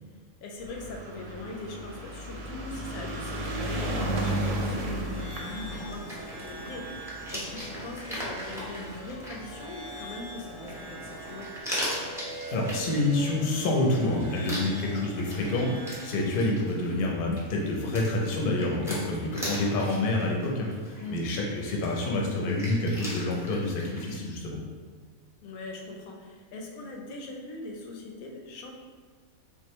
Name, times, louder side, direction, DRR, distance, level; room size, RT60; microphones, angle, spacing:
voice 1, 0.4-11.5 16.2-16.5 18.8-18.9 21.0-21.2 25.4-28.7, left 2 dB, 90° left, 1 dB, 1.1 m, -41 dB
sound 1, 0.6-9.1 9.9-10.0 10.2-10.3 10.5-10.6, right 1 dB, 70° right, 0.9 m, -34 dB
sound 2, 3.6-16.5, right 2 dB, 35° right, 0.9 m, -44 dB
sound 3, 5.3-24.2, equal, 5° right, 0.5 m, -40 dB
voice 2, 12.5-24.6, left 2 dB, 55° left, -1 dB, 0.6 m, -28 dB
3.6 x 2.5 x 3.0 m, 1.5 s
omnidirectional pair, 1.5 m